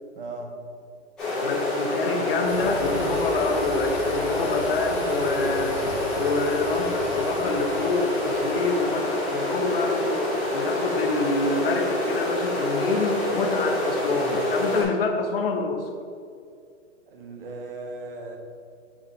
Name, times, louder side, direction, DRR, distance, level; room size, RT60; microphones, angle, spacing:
voice 1, 0.2-0.5 5.9-6.1 17.1-18.4, right 2 dB, 50° right, 3 dB, 0.9 m, -37 dB
sound 1, 1.2-14.8, left 1 dB, ahead, 0.8 m, -26 dB
voice 2, 1.4-5.8 6.2-10.1 10.5-15.9, left 3 dB, 50° left, 4 dB, 0.7 m, -27 dB
sound 2, 2.5-9.4, left 4 dB, 85° left, 0.9 m, -40 dB
6.0 x 4.1 x 3.8 m, 2.2 s
hypercardioid pair, 175°, 37 cm